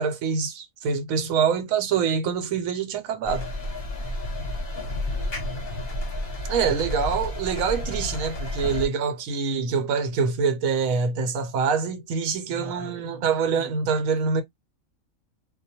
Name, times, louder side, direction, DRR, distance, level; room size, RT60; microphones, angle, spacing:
voice 1, 0.0-3.5 6.5-14.4, right 6 dB, 80° right, 1.0 m, -25 dB
sound 1, 3.2-8.9, left 1 dB, 40° left, 0.8 m, -31 dB
voice 2, 4.9-5.8 8.5-8.9 12.5-13.7, left 1 dB, 30° right, 0.8 m, -45 dB
2.3 x 2.1 x 2.7 m
omnidirectional pair, 1.4 m